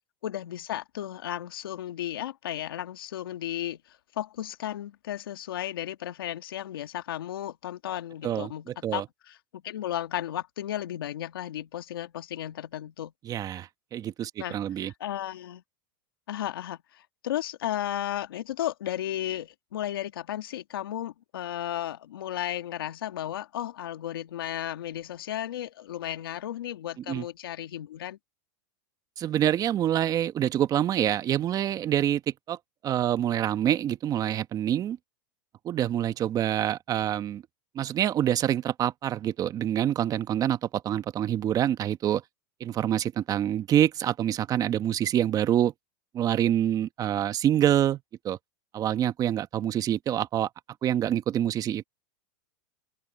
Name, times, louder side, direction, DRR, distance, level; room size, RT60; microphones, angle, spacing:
voice 1, 0.2-13.1 14.4-15.6 16.3-28.2, left 12 dB, 85° left, 1.8 m, -34 dB
voice 2, 8.2-9.0 13.2-14.9 27.1-27.2 29.2-32.6 32.8-35.0 35.6-37.4 37.7-42.2 42.6-45.7 46.1-48.0 48.2-48.4 48.7-50.5 50.8-51.8, right 11 dB, 30° right, 1.2 m, -26 dB
open air
supercardioid pair, 120°, 12 cm